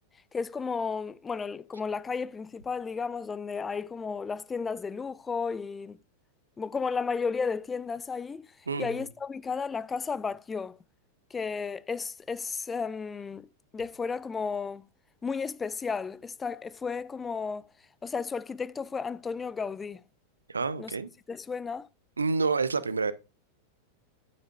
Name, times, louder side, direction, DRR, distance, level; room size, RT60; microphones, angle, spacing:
voice 1, 0.3-6.0 6.6-8.5 8.8-10.8 11.3-13.5 13.7-14.9 15.2-17.7 18.0-20.0 20.8-20.9 21.3-21.9, left 5 dB, 15° left, 0.4 m, -33 dB
voice 2, 8.7-9.1 20.5-21.1 22.2-23.1, right 4 dB, 75° right, 0.7 m, -28 dB
9.1 x 8.7 x 2.3 m
figure-of-eight pair, 90°, 0 cm